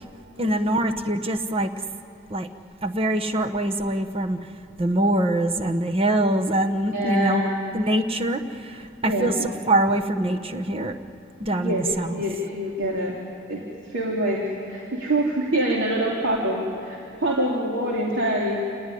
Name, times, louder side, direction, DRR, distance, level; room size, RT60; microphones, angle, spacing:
voice 1, 0.4-1.7 2.3-2.5 2.8-4.4 4.8-7.5 7.7-9.3 9.7-11.0 11.4-12.1, right 1 dB, 30° right, 6 dB, 1.1 m, -23 dB
voice 2, 6.9-7.5 9.0-9.3 11.5-11.8 12.1-13.2 13.5-13.6 13.9-18.6, right 1 dB, 90° right, -3 dB, 3.1 m, -25 dB
28.5 x 18.5 x 9.9 m, 2.7 s
head